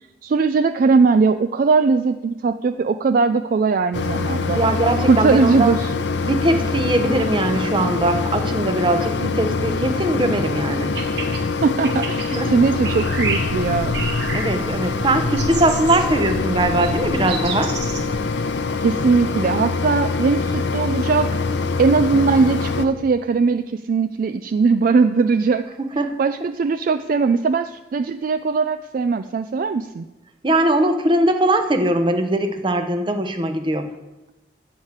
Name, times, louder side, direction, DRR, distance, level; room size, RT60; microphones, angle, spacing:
voice 1, 0.2-4.6 5.1-5.9 11.6-13.9 18.8-21.4 21.8-25.7 26.2-30.0, right 4 dB, 50° right, 10 dB, 0.3 m, -19 dB
Mechanisms, 3.9-22.9, left 4 dB, 70° left, 0.7 m, -24 dB
voice 2, 4.5-5.7 6.2-10.9 12.4-12.5 14.3-17.7 25.8-26.2 30.4-33.8, right 1 dB, 25° right, 7 dB, 0.9 m, -20 dB
sound 1, 10.8-11.4 11.8-12.4 12.8-13.4 13.9-14.5 15.4-16.0 16.8-16.9 17.3-18.0, right 4 dB, 70° right, 1.6 m, -29 dB
sound 2, 12.9-19.5, equal, 85° right, 1.8 m, -40 dB
12.0 x 4.9 x 8.2 m, 1.0 s
head